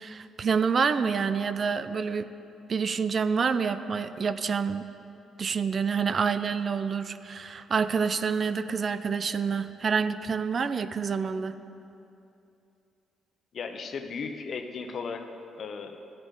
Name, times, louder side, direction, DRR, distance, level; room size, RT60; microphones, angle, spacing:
voice 1, 0.0-2.3 2.7-4.9 5.4-11.6, right 5 dB, 45° right, 12 dB, 0.4 m, -27 dB
voice 2, 13.5-15.3 15.5-16.0, left 5 dB, 55° left, 7 dB, 0.8 m, -36 dB
14.5 x 8.4 x 3.8 m, 2.8 s
cardioid pair, 90°, 0 cm